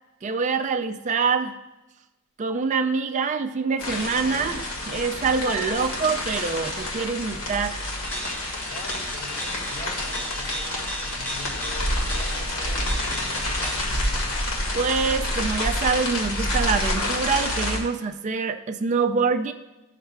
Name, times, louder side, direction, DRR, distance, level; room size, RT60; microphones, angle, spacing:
voice 1, 0.2-1.5 2.4-7.8 14.7-19.5, right 5 dB, 35° right, 7 dB, 0.4 m, -25 dB
sound 1, 3.8-17.8, left 1 dB, 75° left, 1.8 m, -28 dB
sound 2, 8.0-13.9, equal, 10° left, 0.6 m, -35 dB
voice 2, 8.6-14.3, left 2 dB, 55° left, 0 dB, 2.0 m, -43 dB
13.5 x 6.5 x 2.3 m, 1.0 s
head